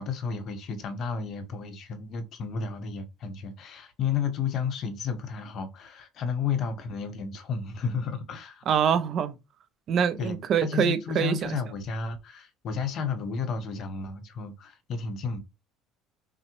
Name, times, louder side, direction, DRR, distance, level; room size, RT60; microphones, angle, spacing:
voice 1, 0.0-8.6 10.2-15.4, left 5 dB, 40° left, 0.7 m, -32 dB
voice 2, 8.7-9.4 9.9-11.4, right 8 dB, 35° right, 0.4 m, -24 dB
5.8 x 2.0 x 2.9 m
cardioid pair, 170°, 0 cm